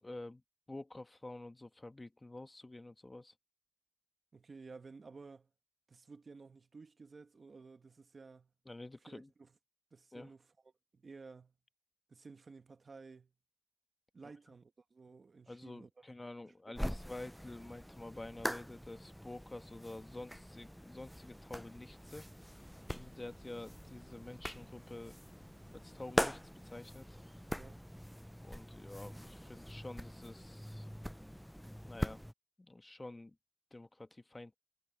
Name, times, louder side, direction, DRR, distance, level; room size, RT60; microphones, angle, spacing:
voice 1, 0.0-0.4 0.7-3.3 8.6-9.3 10.1-10.3 14.2-14.3 15.5-22.2 22.9-25.1 25.7-27.2 28.4-30.9 31.8-32.2 32.6-33.4 33.7-34.6, left 2 dB, 30° left, 1.3 m, -49 dB
voice 2, 4.3-5.5 5.9-8.5 9.1-9.5 9.9-10.5 10.9-11.5 12.1-13.3 14.1-16.0 16.4-17.0 27.6-27.8, right 4 dB, 65° right, 1.4 m, -54 dB
sound 1, 16.8-32.3, equal, ahead, 0.3 m, -43 dB
wide cardioid pair, 65°, 0 cm